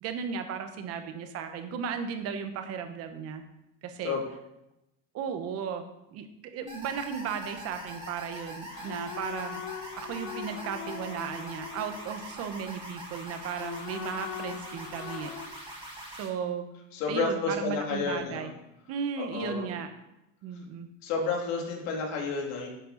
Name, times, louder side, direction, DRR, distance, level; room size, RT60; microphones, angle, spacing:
voice 1, 0.0-3.4 3.8-4.2 5.1-9.6 9.9-15.3 16.1-16.7 17.1-18.5 18.9-19.9 20.4-20.9, right 7 dB, 40° right, 7 dB, 1.0 m, -35 dB
sound 1, 6.6-8.1 8.7-12.5 13.4-15.5, left 10 dB, 50° left, 0.8 m, -42 dB
sound 2, 6.7-16.3, right 1 dB, 10° right, 2.2 m, -43 dB
voice 2, 16.9-18.5 19.2-19.7 21.0-22.7, left 4 dB, 75° left, 0 dB, 2.7 m, -30 dB
11.0 x 7.6 x 4.0 m, 0.89 s
cardioid pair, 180°, 39 cm